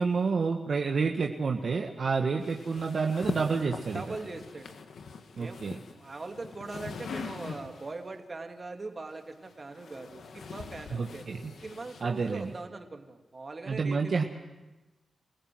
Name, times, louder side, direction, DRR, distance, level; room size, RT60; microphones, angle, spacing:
voice 1, 0.0-4.0 5.4-5.8 10.9-11.5 12.0-12.5 13.7-14.2, right 4 dB, 65° right, 2 dB, 1.5 m, -29 dB
sound 1, 2.4-8.0 9.1-12.6, left 5 dB, 80° left, 1.6 m, -42 dB
voice 2, 3.9-4.7 5.3-5.6 6.0-11.2 11.6-14.2, right 3 dB, 45° right, 4 dB, 2.6 m, -41 dB
27.5 x 16.0 x 7.8 m, 1.1 s
cardioid pair, 55°, 0 cm